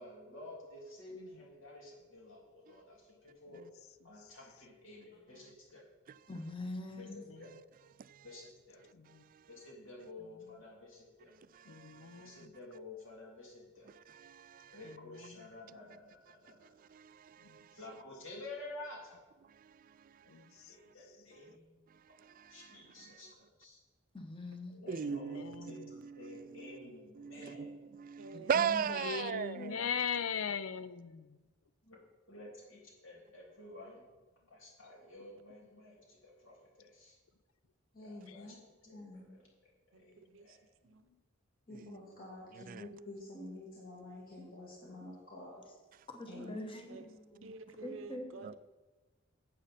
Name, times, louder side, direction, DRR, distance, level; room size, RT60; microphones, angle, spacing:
voice 1, 0.0-3.6 4.0-5.8 6.9-7.5 8.2-8.8 9.5-11.3 12.2-13.9 14.7-16.7 17.8-19.2 20.7-21.8 22.1-23.8 24.7-25.4 25.6-25.8 26.2-27.8 31.9-32.0 32.3-34.0 34.5-37.2 38.0-38.5 38.8-39.4 39.9-40.5, left 2 dB, 65° left, 3.0 m, -51 dB
voice 2, 6.3-7.2 11.7-11.9 24.1-24.8 28.3-29.6 38.9-39.0 46.1-47.4 47.8-48.3, left 1 dB, 25° left, 1.3 m, -44 dB
voice 3, 8.9-9.3 10.4-10.6 11.7-12.5 14.8-15.5 17.4-17.6 20.3-20.8 24.9-25.9 28.9-31.2 38.3-38.5, left 7 dB, 90° left, 0.5 m, -40 dB
voice 4, 11.5-12.4 14.1-14.8 16.8-17.8 19.6-19.8 22.2-22.6 24.9-26.9 27.2-29.7 41.7-42.0 42.5-42.9 48.4-48.5, right 7 dB, 40° right, 0.3 m, -38 dB
voice 5, 28.2-29.1 39.9-40.6 40.8-41.0 46.3-46.5 46.9-47.1 47.4-48.6, right 3 dB, 70° right, 0.7 m, -51 dB
voice 6, 29.5-29.9 37.9-38.5 38.9-39.3 41.7-45.6 46.3-46.5 46.9-47.0, left 1 dB, 45° left, 2.2 m, -49 dB
11.0 x 8.4 x 4.2 m
head